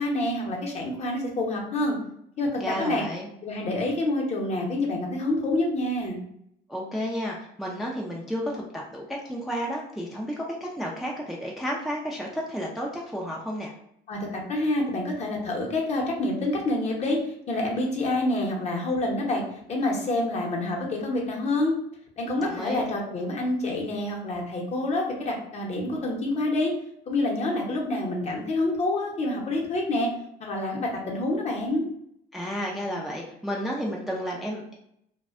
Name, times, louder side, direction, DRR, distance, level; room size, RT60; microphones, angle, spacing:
voice 1, 0.0-2.0 2.4-3.0 3.4-6.2 14.1-17.2 17.5-19.4 19.7-21.8 22.2-26.7 27.1-30.1 30.4-31.8, left 2 dB, 40° left, -1 dB, 0.7 m, -27 dB
voice 2, 2.6-3.3 6.7-13.8 22.4-22.8 32.3-34.7, equal, ahead, -2 dB, 0.3 m, -32 dB
2.5 x 2.1 x 2.4 m, 0.73 s
cardioid pair, 110°, 17 cm